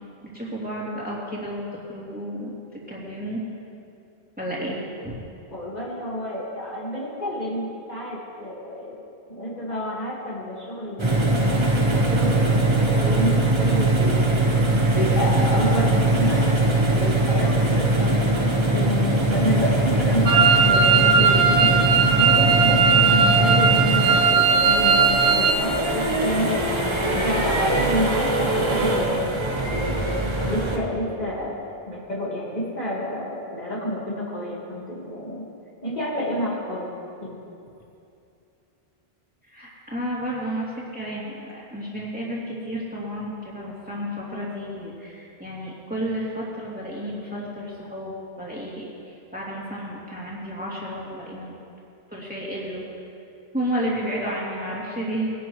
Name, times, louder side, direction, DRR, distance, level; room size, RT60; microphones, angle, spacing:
voice 1, 0.2-3.4 4.4-5.2 39.4-51.5 52.1-52.8 53.5-55.3, equal, 10° right, -7 dB, 3.0 m, -32 dB
voice 2, 5.5-8.9 9.3-11.6 12.1-14.3 14.9-16.7 17.0-18.3 18.7-21.7 22.2-26.6 27.1-29.4 29.7-30.0 30.5-31.5 31.9-35.4 35.8-36.9 37.2-37.4, equal, 40° left, -6 dB, 2.1 m, -29 dB
sound 1, 11.0-30.8, right 1 dB, 25° right, 1.2 m, -21 dB
sound 2, 20.3-25.5, right 6 dB, 90° right, 1.1 m, -18 dB
20.5 x 11.5 x 3.2 m, 2.6 s
omnidirectional pair, 1.1 m